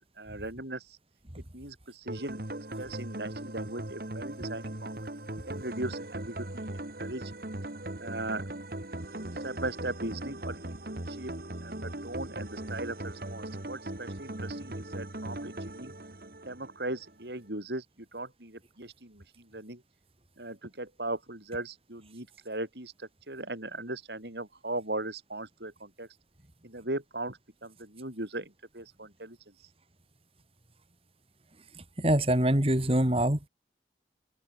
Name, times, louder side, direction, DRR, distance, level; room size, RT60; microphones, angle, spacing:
voice 1, 0.2-1.0 1.5-2.4 2.8-5.0 5.5-7.3 8.0-8.5 9.3-10.8 11.1-11.3 11.6-15.9 16.5-17.8 18.1-19.8 20.4-26.1 26.6-29.7, right 2 dB, 75° right, 6.6 m, -38 dB
sound 1, 2.1-17.1, right 1 dB, 55° right, 2.2 m, -39 dB
voice 2, 32.0-33.5, right 1 dB, 35° right, 2.5 m, -24 dB
open air
head